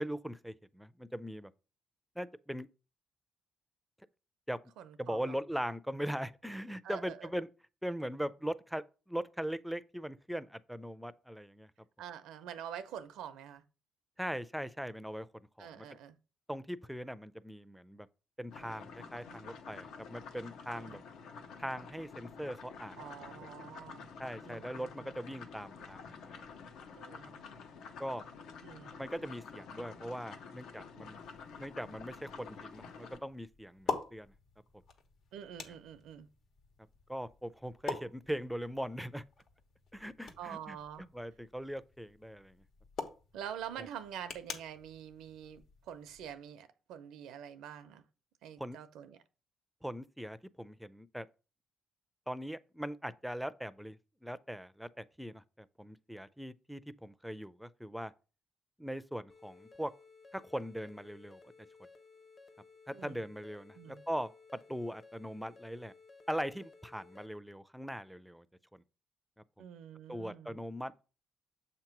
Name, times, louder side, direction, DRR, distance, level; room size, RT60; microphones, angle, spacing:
voice 1, 0.0-1.5 2.2-2.7 4.5-4.6 5.0-7.5 7.8-11.7 14.2-15.3 15.6-15.8 16.5-18.1 18.4-21.0 21.6-23.0 24.2-26.5 28.0-28.2 29.0-31.2 31.6-34.3 37.1-39.2 39.9-40.8 41.1-42.6 48.6-48.8 49.8-51.3 52.3-58.1 58.8-59.9 60.3-61.4 62.9-64.3 64.7-65.9 66.3-68.5 68.7-68.8 70.1-71.0, equal, ahead, 0.4 m, -40 dB
voice 2, 4.8-5.4 6.8-7.3 12.0-13.6 15.6-16.2 20.7-21.0 23.0-24.1 24.4-25.2 26.9-27.4 28.6-29.0 35.3-36.3 40.4-41.0 43.3-48.0 48.4-49.2 62.9-63.2 63.7-64.0 69.6-70.6, right 9 dB, 90° right, 0.6 m, -46 dB
sound 1, 18.5-33.2, left 5 dB, 85° left, 0.8 m, -49 dB
sound 2, 31.1-46.3, left 4 dB, 70° left, 1.2 m, -46 dB
sound 3, 59.3-67.3, left 4 dB, 45° left, 0.9 m, -58 dB
7.4 x 2.9 x 5.8 m
cardioid pair, 90°, 0 cm